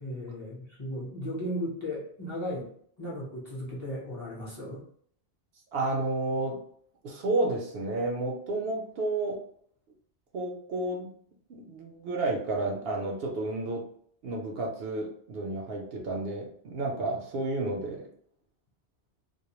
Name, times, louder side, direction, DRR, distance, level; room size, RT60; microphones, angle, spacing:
voice 1, 0.0-2.7 3.0-4.8, equal, 30° left, -7 dB, 0.7 m, -36 dB
voice 2, 5.7-6.6 7.0-9.4 10.3-11.1 11.5-13.8 14.2-18.1, right 2 dB, 65° right, 0 dB, 0.7 m, -31 dB
2.3 x 2.1 x 2.9 m, 0.62 s
omnidirectional pair, 1.1 m